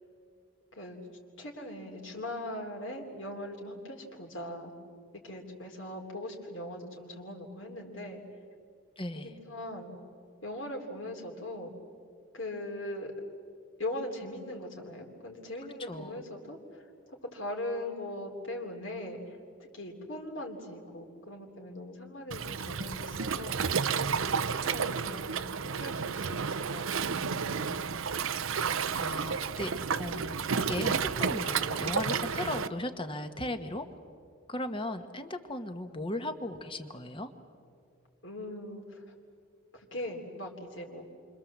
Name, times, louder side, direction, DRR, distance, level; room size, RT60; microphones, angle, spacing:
voice 1, 1.4-4.7 5.2-8.2 9.1-10.0 10.4-11.7 12.3-13.1 13.8-19.4 19.7-23.9 24.3-27.8 38.2-39.0 39.7-41.0, left 1 dB, 65° left, 1 dB, 3.4 m, -40 dB
voice 2, 9.0-9.4 15.8-16.2 28.6-33.9 34.5-37.3, left 1 dB, 25° left, 8 dB, 1.3 m, -37 dB
Waves surf, 22.3-32.7, right 6 dB, 80° right, 0.7 m, -31 dB
28.0 x 25.0 x 7.5 m, 2.3 s
head